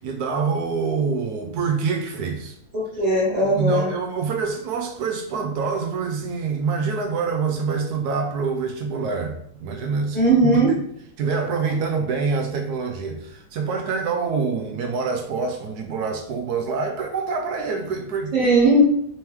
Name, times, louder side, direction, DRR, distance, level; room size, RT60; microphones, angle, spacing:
voice 1, 0.0-2.6 3.4-10.8 11.2-18.5, right 5 dB, 75° right, 1.0 m, -26 dB
voice 2, 2.7-3.9 10.1-10.8 18.3-18.9, right 1 dB, 40° right, 0.6 m, -18 dB
3.4 x 3.3 x 3.0 m
omnidirectional pair, 1.9 m